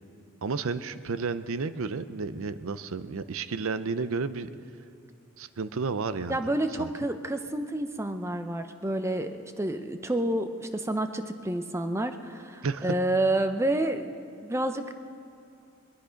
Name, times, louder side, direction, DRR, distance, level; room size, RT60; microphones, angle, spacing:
voice 1, 0.4-4.5 5.4-6.5 6.8-6.9 12.6-12.9, right 4 dB, 75° right, 13 dB, 0.6 m, -32 dB
voice 2, 6.3-14.2 14.4-14.9, right 1 dB, 10° right, 8 dB, 0.6 m, -29 dB
20.0 x 12.5 x 5.1 m, 2.6 s
head